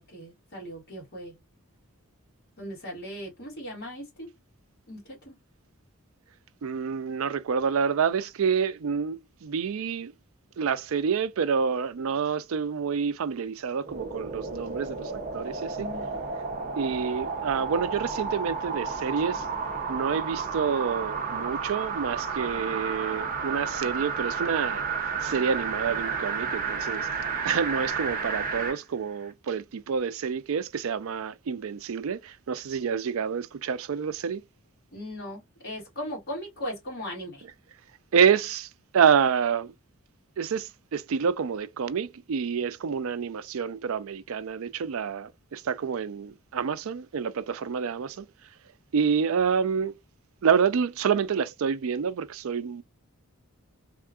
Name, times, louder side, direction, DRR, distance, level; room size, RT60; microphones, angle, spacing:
voice 1, 0.0-1.4 2.6-4.3 4.9-5.4 15.8-16.1 34.9-37.4, equal, 45° left, 2.0 m, -38 dB
voice 2, 6.6-10.1 10.6-15.9 16.8-19.4 19.9-24.8 25.2-27.1 27.4-34.4 38.1-39.7 40.4-48.3 48.9-49.9 50.4-52.8, right 6 dB, 70° right, 0.4 m, -28 dB
sound 1, 13.8-28.8 29.2-29.3, right 5 dB, 40° right, 0.8 m, -32 dB
3.5 x 2.4 x 2.3 m
head